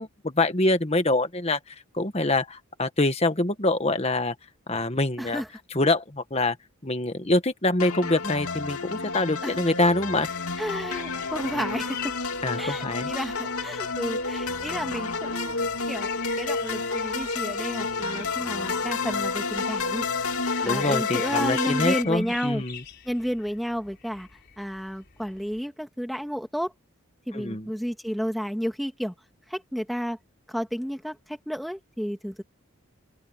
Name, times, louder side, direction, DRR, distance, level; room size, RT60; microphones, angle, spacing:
voice 1, 0.0-1.6 1.9-4.3 4.7-5.4 5.7-6.6 6.8-10.3 12.4-13.1 20.6-22.8 27.3-27.7, left 2 dB, 30° left, 1.6 m, -25 dB
sound 1, 7.8-22.0, left 4 dB, 90° left, 2.6 m, -30 dB
sound 2, 10.2-25.6, left 9 dB, 50° left, 4.3 m, -45 dB
voice 2, 10.6-12.1 12.6-15.6 15.9-20.1 20.6-22.6 23.0-24.3 24.6-26.7 27.3-29.1 29.5-30.2 30.5-32.4, equal, ahead, 2.3 m, -31 dB
head